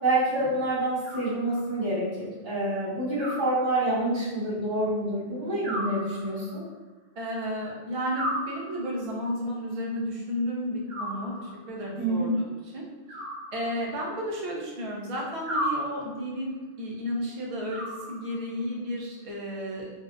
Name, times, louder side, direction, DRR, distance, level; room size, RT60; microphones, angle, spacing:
voice 1, 0.0-6.6 12.0-12.3, right 1 dB, 30° right, -10 dB, 0.9 m, -27 dB
Animal, 1.0-1.9 3.2-4.2 5.6-6.7 8.1-9.2 10.9-11.8 13.1-14.2 15.5-16.4 17.7-18.6, equal, 75° right, 1.0 m, -35 dB
voice 2, 5.5-5.9 7.2-12.9 13.5-17.8 18.1-19.9, equal, 45° right, -3 dB, 0.4 m, -33 dB
2.6 x 2.1 x 2.3 m, 1.2 s
omnidirectional pair, 1.0 m